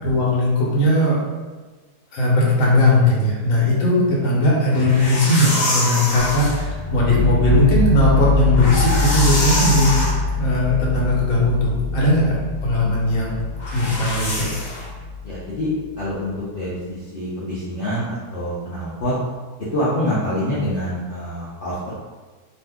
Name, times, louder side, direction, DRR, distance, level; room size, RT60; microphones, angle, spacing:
voice 1, 0.0-1.2 2.1-10.0 10.3-13.4 13.7-14.5, left 1 dB, 60° left, -5 dB, 1.1 m, -18 dB
sound 1, 4.7-6.6 8.4-10.2 13.6-14.9, left 1 dB, 40° left, 0.7 m, -25 dB
sound 2, 6.2-16.0, left 3 dB, 60° right, 0.9 m, -24 dB
voice 2, 15.2-15.7 16.0-19.1 19.7-21.9, equal, 75° left, -9 dB, 0.4 m, -26 dB
2.6 x 2.5 x 3.4 m, 1.3 s
omnidirectional pair, 1.8 m